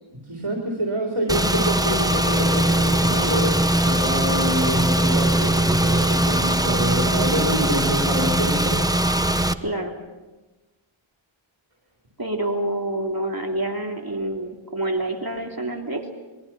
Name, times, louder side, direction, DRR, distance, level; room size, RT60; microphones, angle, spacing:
voice 1, 0.1-8.8, right 1 dB, 85° right, -2 dB, 3.7 m, -26 dB
Car / Engine, 1.3-9.5, right 1 dB, 10° right, 1.0 m, -20 dB
voice 2, 9.6-9.9 12.2-16.1, right 1 dB, 45° right, 2 dB, 3.1 m, -27 dB
27.0 x 22.5 x 6.0 m, 1.2 s
wide cardioid pair, 40°, 49 cm